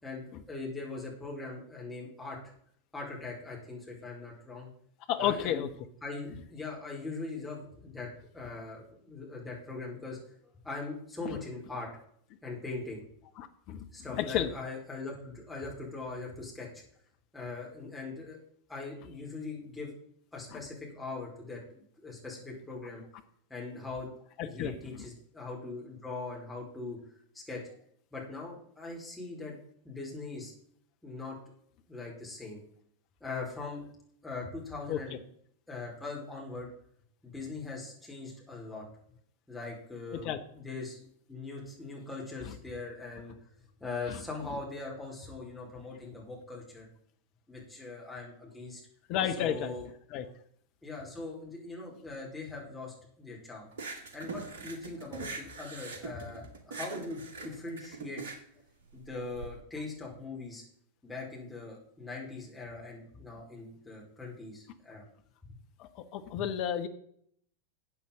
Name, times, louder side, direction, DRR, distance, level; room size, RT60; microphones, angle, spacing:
voice 1, 0.0-2.4 2.9-4.7 5.2-5.6 6.0-10.2 10.6-11.9 12.4-13.0 13.9-16.7 17.3-18.4 18.7-19.9 20.3-23.0 23.5-24.1 24.4-27.0 27.3-27.6 28.1-29.6 29.8-30.5 31.0-31.4 31.9-32.6 33.2-33.9 34.2-35.2 35.7-36.7 37.2-38.8 39.5-43.3 43.8-46.9 47.5-48.8 49.4-49.8 50.8-53.7 54.1-58.2 58.9-60.6 61.0-65.0 65.4-65.5, left 3 dB, 5° left, -4 dB, 4.9 m, -41 dB
voice 2, 5.1-5.7 11.2-11.4 13.4-13.9 14.1-14.5 20.5-20.6 24.4-24.7 34.9-35.0 40.2-40.4 42.5-42.6 44.1-44.2 49.1-49.8 50.1-50.2 65.8-66.9, left 10 dB, 40° left, 8 dB, 1.2 m, -32 dB
sound 1, 53.7-59.5, right 3 dB, 60° right, 1.9 m, -42 dB
13.5 x 8.3 x 3.9 m, 0.65 s
figure-of-eight pair, 90°, 0 cm